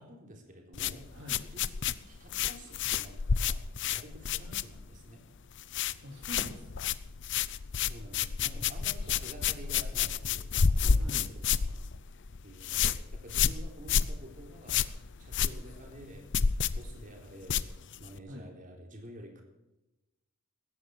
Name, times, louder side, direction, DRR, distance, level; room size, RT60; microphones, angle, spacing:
voice 1, 0.0-1.2 1.5-3.6 3.9-5.2 7.8-11.6 12.4-14.8 15.2-16.3 16.7-17.6 18.0-19.4, equal, 40° right, 2 dB, 3.8 m, -49 dB
sound 1, 0.7-5.1 5.4-6.0 6.2-18.2, left 7 dB, 60° left, 0.6 m, -30 dB
voice 2, 1.1-1.5 6.0-6.9 8.8-9.2 10.9-11.3 18.3-18.5, equal, 60° right, 0 dB, 2.6 m, -46 dB
17.0 x 13.5 x 4.7 m, 1.0 s
head